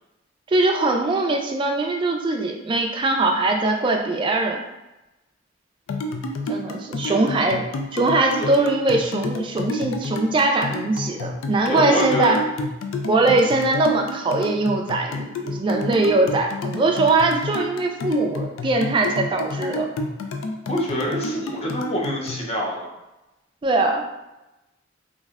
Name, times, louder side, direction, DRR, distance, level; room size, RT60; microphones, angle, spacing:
voice 1, 0.5-4.6 6.5-7.6 7.9-12.4 13.1-19.9 23.6-24.0, right 2 dB, 25° right, 2 dB, 0.3 m, -21 dB
sound 1, 5.9-22.4, left 2 dB, 80° left, 0.3 m, -30 dB
voice 2, 11.6-12.3 20.7-22.9, equal, 30° left, -2 dB, 0.6 m, -26 dB
3.2 x 2.5 x 2.3 m, 0.98 s
head